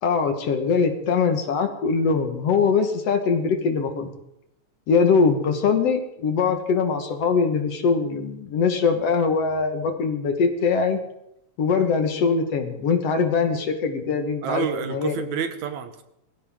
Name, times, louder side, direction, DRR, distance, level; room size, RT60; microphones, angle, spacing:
voice 1, 0.0-4.1 4.9-11.0 11.6-15.1, left 5 dB, 60° left, 6 dB, 2.4 m, -22 dB
voice 2, 14.4-16.0, right 7 dB, 80° right, 9 dB, 2.5 m, -29 dB
21.5 x 16.0 x 3.8 m, 0.83 s
omnidirectional pair, 3.4 m